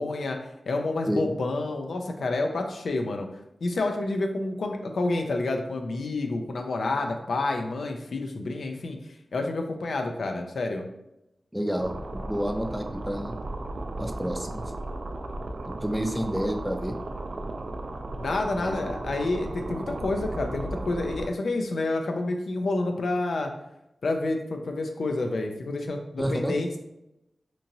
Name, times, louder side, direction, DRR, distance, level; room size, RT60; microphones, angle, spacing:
voice 1, 0.0-3.3 3.6-9.0 9.3-10.9 18.2-23.5 24.0-26.8, left 2 dB, 90° left, 4 dB, 0.3 m, -29 dB
voice 2, 11.5-13.3 14.0-14.6 15.7-16.9 18.6-18.8 26.2-26.5, equal, 5° right, 4 dB, 0.4 m, -29 dB
sound 1, 11.8-21.3, right 2 dB, 70° right, 0.3 m, -35 dB
2.9 x 2.5 x 2.6 m, 0.87 s
cardioid pair, 40°, 0 cm